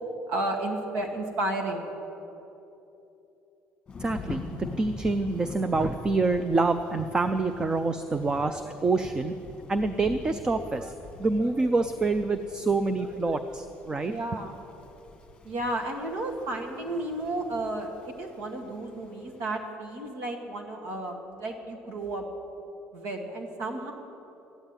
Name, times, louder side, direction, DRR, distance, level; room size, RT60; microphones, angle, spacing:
voice 1, 0.3-1.9 14.0-14.6 15.4-22.2 22.9-23.9, right 1 dB, 80° right, 2 dB, 2.1 m, -32 dB
Thunder / Rain, 3.9-19.5, left 3 dB, 15° left, 1.6 m, -44 dB
voice 2, 4.0-9.4 9.7-14.1, right 3 dB, 15° right, 9 dB, 0.4 m, -27 dB
13.5 x 9.7 x 8.9 m, 3.0 s
cardioid pair, 175°, 5 cm